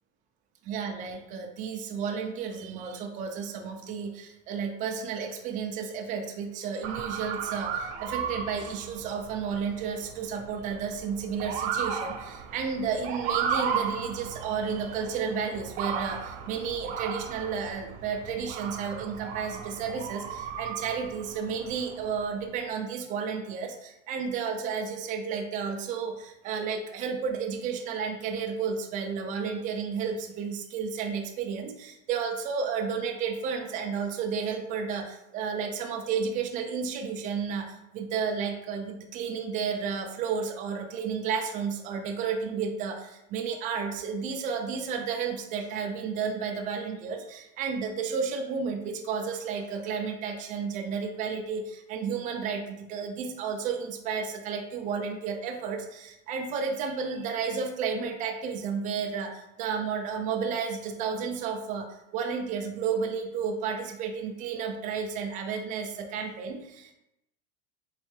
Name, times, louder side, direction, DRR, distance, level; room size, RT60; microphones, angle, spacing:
voice 1, 0.7-61.9 62.1-66.9, right 6 dB, 25° right, 3 dB, 0.4 m, -32 dB
Motor vehicle (road) / Siren, 6.8-22.4, right 7 dB, 75° right, 0.6 m, -35 dB
4.0 x 3.2 x 3.2 m, 0.87 s
cardioid pair, 170°, 31 cm